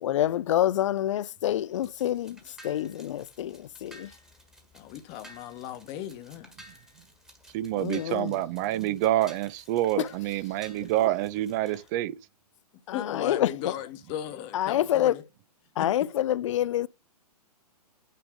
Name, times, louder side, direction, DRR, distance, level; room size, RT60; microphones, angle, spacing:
voice 1, 0.0-4.1 7.8-8.4 10.0-10.1 12.9-13.7 14.5-15.2 15.8-16.9, left 12 dB, 50° left, 0.4 m, -27 dB
sound 1, 1.5-11.9, equal, 5° right, 1.5 m, -54 dB
voice 2, 4.7-6.5 12.9-15.2 15.8-16.1, left 11 dB, 30° left, 1.2 m, -37 dB
voice 3, 7.5-12.2, right 14 dB, 30° right, 0.5 m, -27 dB
9.2 x 3.4 x 5.0 m
figure-of-eight pair, 120°, 21 cm